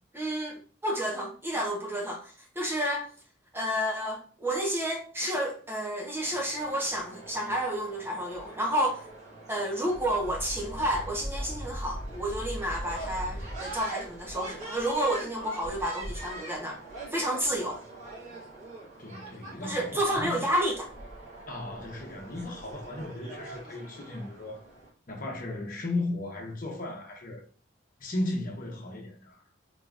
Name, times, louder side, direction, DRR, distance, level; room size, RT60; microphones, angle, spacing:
voice 1, 0.1-3.1 3.5-9.0 9.5-16.8 17.1-17.8 19.6-20.9, equal, 10° right, 0.8 m, -30 dB
sound 1, 6.2-24.9, right 1 dB, 35° right, 1.6 m, -41 dB
voice 2, 19.0-20.4 21.5-24.6 25.1-27.4 28.0-29.4, left 2 dB, 45° left, 0.9 m, -35 dB
4.0 x 3.7 x 2.4 m
head